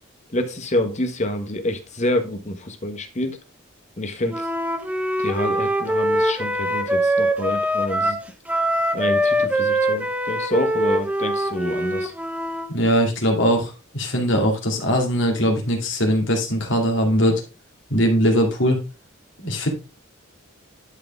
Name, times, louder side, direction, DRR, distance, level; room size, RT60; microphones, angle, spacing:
voice 1, 0.3-3.4 4.0-4.5 5.2-8.2 8.9-12.1, left 1 dB, 35° left, 6 dB, 1.3 m, -27 dB
Wind instrument woodwind instrument, 4.3-12.7, right 1 dB, 5° right, 0.9 m, -23 dB
voice 2, 12.7-17.4 17.9-18.8 19.4-19.7, equal, 60° left, 2 dB, 2.5 m, -20 dB
11.0 x 5.0 x 3.5 m, 0.29 s
head